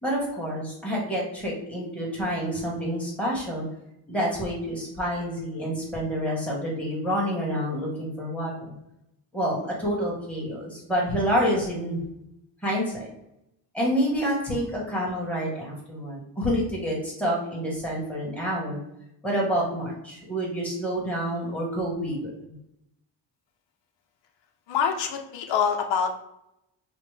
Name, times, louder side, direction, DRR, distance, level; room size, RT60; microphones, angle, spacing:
voice 1, 0.0-3.6 4.1-8.7 9.3-12.0 12.6-13.1 13.7-18.8 19.2-22.3, equal, 5° left, -4 dB, 1.3 m, -28 dB
voice 2, 24.7-26.2, left 7 dB, 80° left, 3 dB, 0.6 m, -25 dB
4.9 x 2.1 x 3.3 m, 0.82 s
cardioid pair, 145°, 43 cm